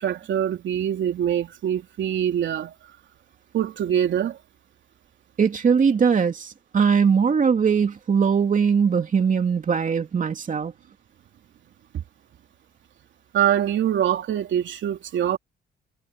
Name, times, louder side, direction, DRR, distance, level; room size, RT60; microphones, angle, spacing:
voice 1, 0.0-2.7 3.5-4.4 13.3-15.4, right 10 dB, 70° right, 3.2 m, -24 dB
voice 2, 5.4-10.7, right 6 dB, 40° right, 2.7 m, -20 dB
cardioid pair, 90°, 20 cm